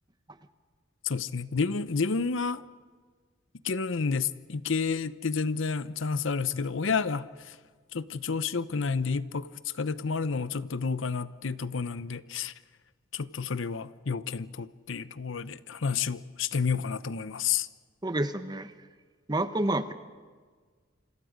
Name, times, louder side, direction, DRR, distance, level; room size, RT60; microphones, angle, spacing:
voice 1, 1.0-2.6 3.6-7.3 7.9-9.5 9.8-12.5 13.1-17.7, left 5 dB, 75° left, 15 dB, 0.7 m, -30 dB
voice 2, 18.0-18.7 19.3-19.9, right 1 dB, 20° right, 10 dB, 1.0 m, -28 dB
28.0 x 26.5 x 5.1 m, 1.5 s
head